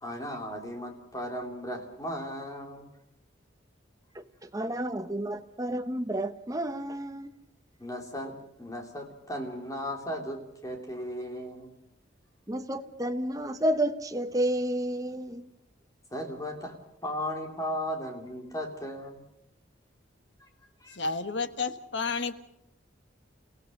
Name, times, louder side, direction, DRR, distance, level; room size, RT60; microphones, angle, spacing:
voice 1, 0.0-2.9 7.8-8.3 8.6-11.7 16.1-16.7 17.0-19.2 20.4-20.5 20.8-21.0, equal, 15° left, 3.2 m, -36 dB
voice 2, 4.1-7.3 12.5-15.4, right 1 dB, 20° right, 1.1 m, -31 dB
voice 3, 20.9-22.3, left 4 dB, 65° left, 1.4 m, -31 dB
29.5 x 17.0 x 6.6 m
head